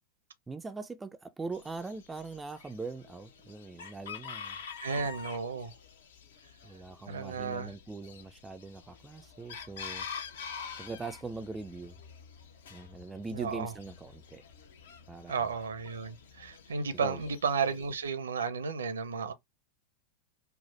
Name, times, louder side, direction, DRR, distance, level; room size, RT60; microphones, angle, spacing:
voice 1, 0.5-4.6 6.6-10.1 10.8-12.0 12.7-14.4 15.1-15.5 17.0-17.2, right 3 dB, 10° right, 0.4 m, -41 dB
Chicken rooster, 1.5-18.1, left 6 dB, 60° left, 0.7 m, -47 dB
voice 2, 4.8-5.7 7.1-7.7 13.3-13.7 15.3-19.3, right 5 dB, 70° right, 0.7 m, -33 dB
4.6 x 2.0 x 3.2 m
figure-of-eight pair, 90°, 0 cm